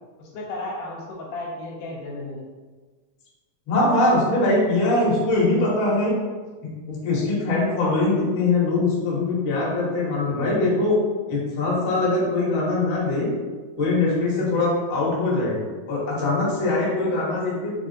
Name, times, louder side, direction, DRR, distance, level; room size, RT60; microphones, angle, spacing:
voice 1, 0.2-2.5 13.9-14.1 14.4-14.6, left 2 dB, 75° left, -3 dB, 2.1 m, -34 dB
voice 2, 3.7-6.1 6.6-11.0 11.3-13.3 13.8-15.6 15.9-17.7, left 2 dB, 55° left, -6 dB, 1.3 m, -22 dB
4.8 x 3.5 x 2.7 m, 1.4 s
omnidirectional pair, 3.7 m